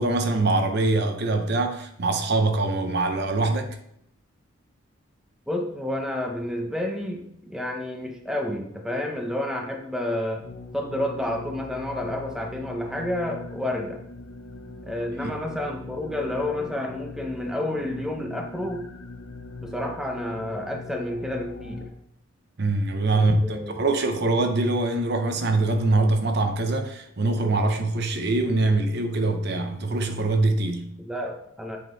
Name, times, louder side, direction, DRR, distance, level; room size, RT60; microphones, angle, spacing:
voice 1, 0.0-3.7 15.2-15.3 22.6-30.9, right 2 dB, 50° right, 0.6 m, -23 dB
voice 2, 5.5-10.4 10.7-14.0 14.8-18.9 19.6-21.9 23.1-23.8 31.0-31.8, left 1 dB, 5° right, 0.6 m, -30 dB
sound 1, 10.4-21.9, left 3 dB, 80° left, 0.7 m, -41 dB
7.7 x 3.8 x 3.9 m
head